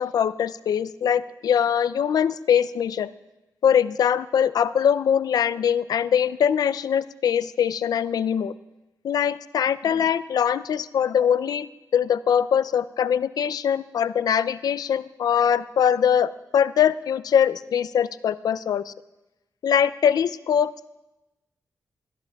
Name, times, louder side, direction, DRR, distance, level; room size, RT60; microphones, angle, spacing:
voice 1, 0.0-3.1 3.6-8.5 9.0-18.9 19.6-20.9, left 8 dB, 75° left, 15 dB, 0.4 m, -22 dB
20.5 x 14.0 x 2.3 m, 1.0 s
cardioid pair, 95°, 7 cm